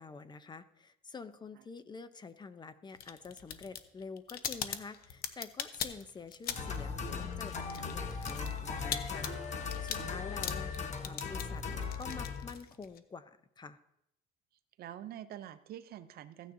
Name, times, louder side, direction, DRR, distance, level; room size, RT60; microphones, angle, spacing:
voice 1, 0.0-9.3 9.5-13.8, left 4 dB, 25° left, 12 dB, 0.7 m, -48 dB
sound 1, 3.0-6.9 7.1-13.0, left 9 dB, 65° left, 0.8 m, -41 dB
sound 2, 6.5-12.5, left 5 dB, 45° left, 1.3 m, -38 dB
voice 2, 10.0-10.3 14.8-16.5, right 11 dB, 65° right, 12 dB, 0.6 m, -46 dB
15.5 x 9.3 x 2.7 m, 0.77 s
cardioid pair, 110°, 17 cm